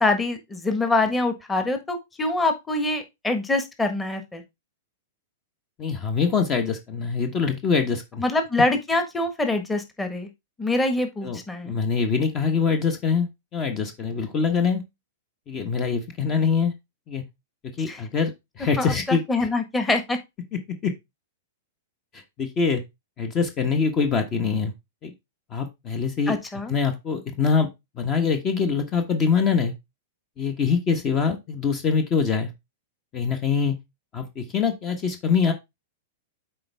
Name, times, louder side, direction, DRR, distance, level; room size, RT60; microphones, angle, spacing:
voice 1, 0.0-4.4 8.2-10.3 10.6-11.7 17.9-18.0 18.8-20.2 26.3-26.7, left 2 dB, 10° left, 7 dB, 1.4 m, -25 dB
voice 2, 5.8-8.2 11.2-14.8 15.5-16.7 17.1-17.2 17.8-19.2 20.8-20.9 22.4-22.8 23.2-24.7 25.0-25.1 25.5-26.3 26.7-27.7 28.0-29.7 30.4-32.5 33.1-33.7 34.1-35.5, left 5 dB, 30° left, 7 dB, 1.2 m, -24 dB
7.7 x 4.5 x 3.4 m, 0.21 s
hypercardioid pair, 115°, 0 cm